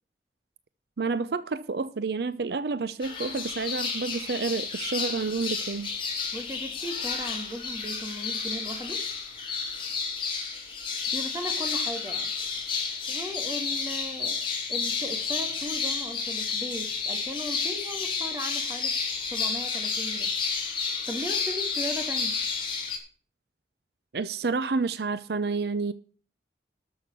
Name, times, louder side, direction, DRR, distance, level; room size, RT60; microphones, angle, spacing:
voice 1, 1.0-5.9 24.1-25.9, right 4 dB, 70° right, 0.6 m, -29 dB
sound 1, 3.0-23.0, left 5 dB, 30° left, 3.2 m, -31 dB
voice 2, 6.3-9.1 11.1-12.3 13.1-19.0 19.3-20.3 21.1-22.4, equal, 15° right, 2.0 m, -37 dB
13.0 x 6.4 x 7.1 m
head